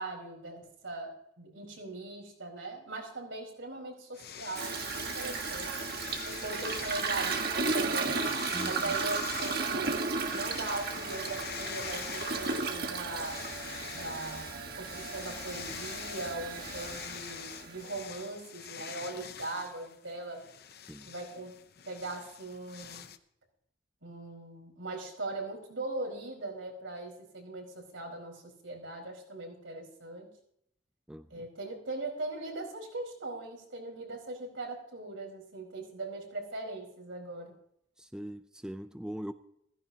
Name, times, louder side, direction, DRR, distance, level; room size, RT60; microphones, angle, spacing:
voice 1, 0.0-5.7 6.4-8.3 8.6-10.0 10.3-13.4 13.9-20.4 21.1-21.5 21.8-23.1 24.0-30.3 31.3-37.5, right 2 dB, 90° right, 4.8 m, -40 dB
sound 1, 4.1-7.5 8.1-9.7 10.2-12.8 13.1-23.2, left 8 dB, 55° left, 0.7 m, -45 dB
Toilet flush, 4.5-18.0, right 4 dB, 50° right, 1.5 m, -34 dB
voice 2, 8.5-9.0 20.9-21.1 31.1-31.5 38.0-39.3, equal, 5° right, 0.4 m, -41 dB
15.5 x 15.0 x 2.8 m
head